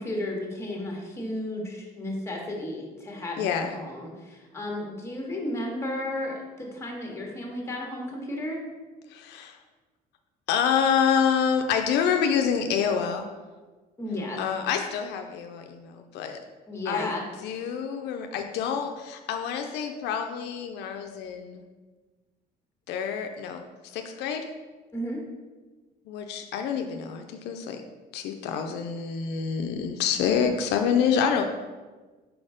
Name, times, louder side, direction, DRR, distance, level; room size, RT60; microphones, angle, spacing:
voice 1, 0.0-8.6 14.0-14.4 16.7-17.2 24.9-25.2, left 1 dB, 15° left, -1 dB, 1.5 m, -33 dB
voice 2, 3.4-3.7 9.1-9.6 10.5-13.3 14.4-16.4 16.9-17.1 17.4-21.6 22.9-24.5 26.1-27.8 28.1-31.4, left 7 dB, 80° left, 5 dB, 0.5 m, -27 dB
4.5 x 4.2 x 4.9 m, 1.3 s
cardioid pair, 110°, 17 cm